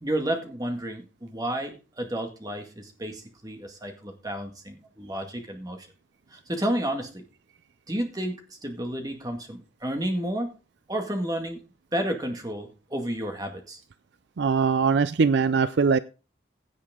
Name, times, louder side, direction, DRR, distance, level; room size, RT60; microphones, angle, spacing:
voice 1, 0.0-5.9 6.3-7.2 7.9-10.5 10.9-11.6 11.9-13.8, right 1 dB, 20° right, 4 dB, 1.9 m, -31 dB
voice 2, 14.4-16.0, right 5 dB, 65° right, 14 dB, 0.4 m, -21 dB
16.5 x 6.6 x 3.7 m, 0.33 s
head